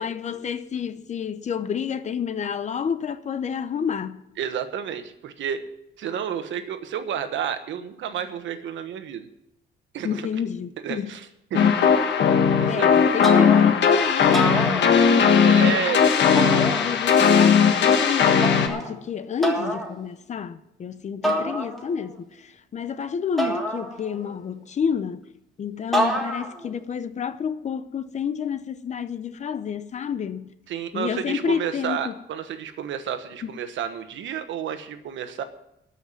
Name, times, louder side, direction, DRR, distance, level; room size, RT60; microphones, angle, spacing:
voice 1, 0.0-4.2 10.0-11.1 12.7-15.1 15.6-25.3 25.6-30.5 30.9-32.2 33.4-33.5, left 7 dB, 35° left, 0.6 m, -29 dB
voice 2, 4.4-5.6 6.0-9.3 9.9-10.3 10.8-11.6 12.6-12.9 15.4-16.1 30.7-35.4, right 8 dB, 80° right, 1.2 m, -30 dB
sound 1, 11.5-18.7, left 6 dB, 65° left, 1.4 m, -18 dB
sound 2, 13.2-13.9 14.2-15.4 16.4-17.3 18.4-18.9 19.4-19.9 21.2-22.1 23.4-24.4 25.9-26.7, equal, ahead, 1.8 m, -27 dB
13.0 x 5.8 x 9.5 m
cardioid pair, 170°, 20 cm